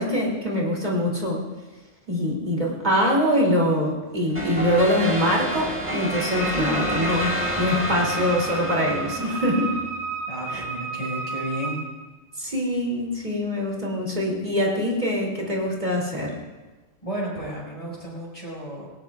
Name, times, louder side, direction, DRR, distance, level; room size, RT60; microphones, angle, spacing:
voice 1, 0.0-1.4 2.1-9.7 10.5-10.6 12.4-16.4, equal, 40° right, -2 dB, 3.0 m, -24 dB
sound 1, 4.3-9.8, equal, 10° right, 1.8 m, -29 dB
Wind instrument woodwind instrument, 6.4-11.9, right 4 dB, 75° right, 2.4 m, -32 dB
voice 2, 10.3-11.8 17.0-18.9, equal, 30° left, -5 dB, 5.7 m, -32 dB
19.0 x 18.5 x 2.4 m, 1.2 s
omnidirectional pair, 1.1 m